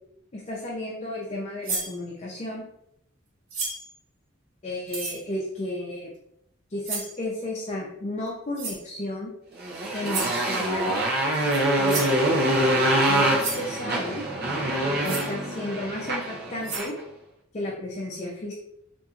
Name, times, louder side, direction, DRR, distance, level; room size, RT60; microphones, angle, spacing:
voice 1, 0.3-2.6 4.6-6.1 6.7-9.3 9.9-11.0 11.8-12.0 13.1-14.2 15.0-16.9 17.5-18.5, left 1 dB, 35° left, -3 dB, 0.5 m, -33 dB
sound 1, 1.6-1.9 3.5-3.9 4.9-5.2 6.8-7.2 8.5-8.8 10.1-10.4 11.5-11.6 11.9-12.2 13.0-13.1 13.4-13.7 15.0-15.3 16.2-16.3 16.6-16.9, right 3 dB, 90° right, 1.0 m, -32 dB
Motorcycle, 9.6-17.0, right 1 dB, 55° right, 0.7 m, -25 dB
4.2 x 2.6 x 2.4 m, 0.76 s
head